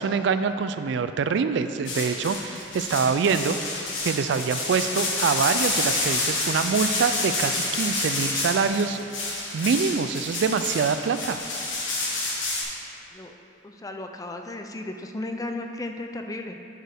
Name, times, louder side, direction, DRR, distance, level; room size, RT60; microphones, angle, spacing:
voice 1, 0.0-3.6 4.0-9.0 9.5-11.4, right 5 dB, 65° right, 10 dB, 0.3 m, -25 dB
sound 1, 1.8-12.6, left 2 dB, 90° left, 1.6 m, -28 dB
voice 2, 13.6-16.6, left 2 dB, 20° left, 4 dB, 0.4 m, -34 dB
9.9 x 6.5 x 3.5 m, 2.9 s
head